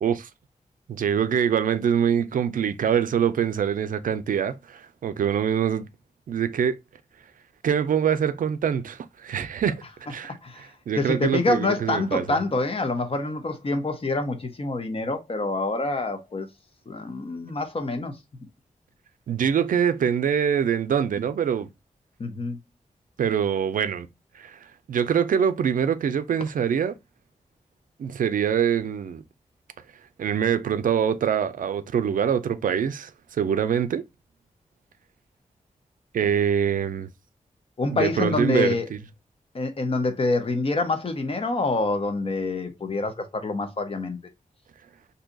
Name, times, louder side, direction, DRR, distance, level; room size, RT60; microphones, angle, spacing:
voice 1, 0.9-5.9 6.3-6.8 7.6-9.7 10.1-12.4 19.3-21.7 23.2-24.1 24.3-24.6 24.9-27.0 28.0-29.2 30.2-34.1 36.1-37.1 37.9-39.0, right 8 dB, 85° right, 0.4 m, -24 dB
voice 2, 10.9-16.5 16.9-18.2 22.2-22.6 37.8-38.9 39.5-44.2, left 3 dB, 45° left, 0.7 m, -26 dB
2.7 x 2.3 x 3.8 m
wide cardioid pair, 115°, 14 cm